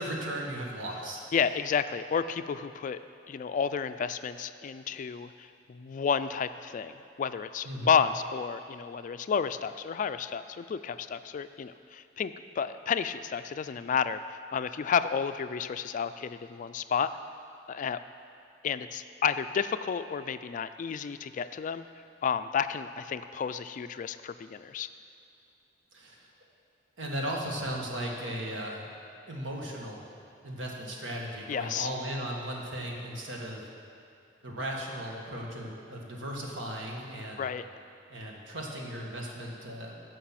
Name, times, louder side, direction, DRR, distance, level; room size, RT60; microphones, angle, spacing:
voice 1, 0.0-1.2 7.7-7.9 25.9-26.3 27.0-28.9 29.3-30.1 30.4-33.7 34.4-37.5 38.1-40.0, right 1 dB, 80° right, -1 dB, 1.7 m, -36 dB
voice 2, 1.3-3.0 3.3-17.1 17.7-18.0 18.6-21.9 22.2-24.9 31.5-31.9 37.4-37.6, left 6 dB, 45° left, 11 dB, 0.3 m, -31 dB
14.5 x 5.4 x 5.8 m, 2.6 s
head